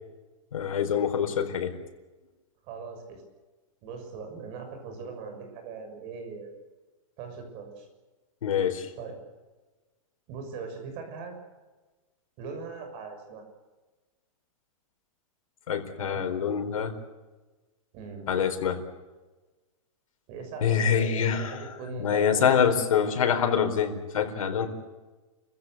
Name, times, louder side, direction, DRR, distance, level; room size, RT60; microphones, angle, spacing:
voice 1, 0.5-1.7 8.4-8.9 15.7-16.9 18.3-18.8 20.6-21.6 22.0-24.7, left 7 dB, 85° left, 6 dB, 4.4 m, -25 dB
voice 2, 2.6-3.2 3.8-6.5 7.2-7.9 9.0-9.2 10.3-11.3 12.4-13.4 16.0-16.3 17.9-18.3 20.3-22.8, right 5 dB, 35° right, 5 dB, 6.6 m, -40 dB
30.0 x 16.0 x 8.4 m, 1.2 s
supercardioid pair, 165°, 17 cm